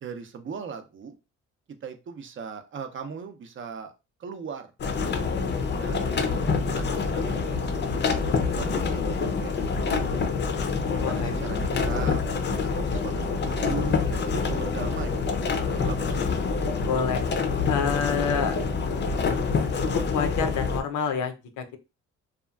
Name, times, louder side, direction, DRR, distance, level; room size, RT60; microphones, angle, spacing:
voice 1, 0.0-1.2 1.8-3.9 4.2-4.7 5.7-7.9 8.4-10.3 10.9-15.2 15.7-16.4, right 6 dB, 40° right, 0.5 m, -39 dB
sound 1, 4.8-20.8, left 4 dB, 35° left, 0.5 m, -26 dB
voice 2, 11.0-11.3 16.8-17.2 17.7-18.6 20.1-21.8, left 7 dB, 85° left, 0.6 m, -27 dB
2.8 x 2.3 x 2.3 m
cardioid pair, 90°, 30 cm